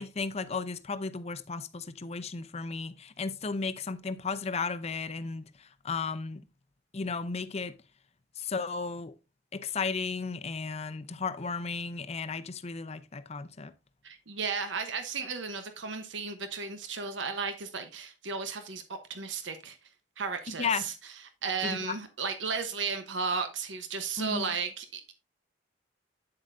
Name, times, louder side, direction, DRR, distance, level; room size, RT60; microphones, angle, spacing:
voice 1, 0.0-5.5 5.8-6.4 6.9-7.8 8.4-9.1 9.5-13.7 20.5-20.8 21.6-22.0 24.2-24.5, left 4 dB, 35° left, 0.6 m, -34 dB
voice 2, 14.0-19.8 20.2-20.9 21.4-25.1, right 5 dB, 85° right, 1.0 m, -34 dB
8.8 x 7.6 x 2.6 m
head